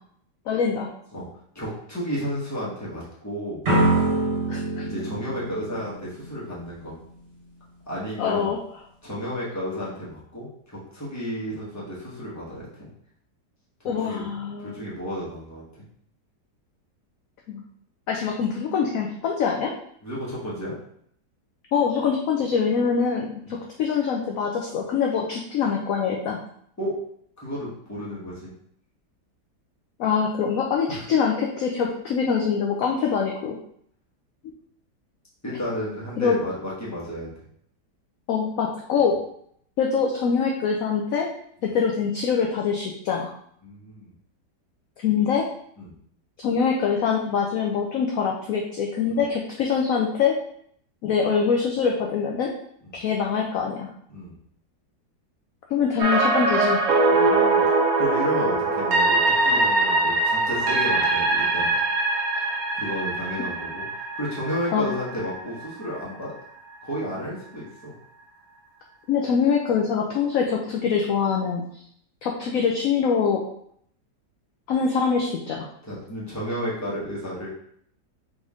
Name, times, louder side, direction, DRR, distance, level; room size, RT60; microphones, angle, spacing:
voice 1, 0.5-0.9 4.5-4.8 8.2-8.6 13.8-14.9 17.5-17.6 18.1-19.7 21.7-26.4 30.0-33.6 36.2-36.4 38.3-39.2 39.8-41.3 41.7-43.3 45.0-45.4 46.4-50.4 51.0-52.5 52.9-53.9 55.7-56.8 64.7-64.9 69.1-71.6 72.2-73.4 74.7-75.7, left 6 dB, 65° left, 0 dB, 0.9 m, -24 dB
voice 2, 1.5-3.6 4.8-7.0 7.9-8.5 9.0-12.9 14.0-14.2 14.6-15.6 20.0-20.7 23.4-23.6 26.8-27.0 27.4-28.5 30.9-31.0 35.4-37.3 39.0-39.1 41.6-41.7 43.6-44.1 45.8-45.9 49.1-49.2 52.8-52.9 54.1-54.4 57.1-57.7 58.0-61.8 62.8-63.8 64.1-66.3 66.8-67.9 75.8-77.5, equal, 10° left, -7 dB, 1.3 m, -32 dB
sound 1, 3.6-6.5, right 2 dB, 40° right, 1.7 m, -24 dB
sound 2, 56.0-66.0 66.4-66.5, right 2 dB, 65° right, 1.2 m, -22 dB
4.0 x 3.4 x 3.6 m, 0.66 s
omnidirectional pair, 1.8 m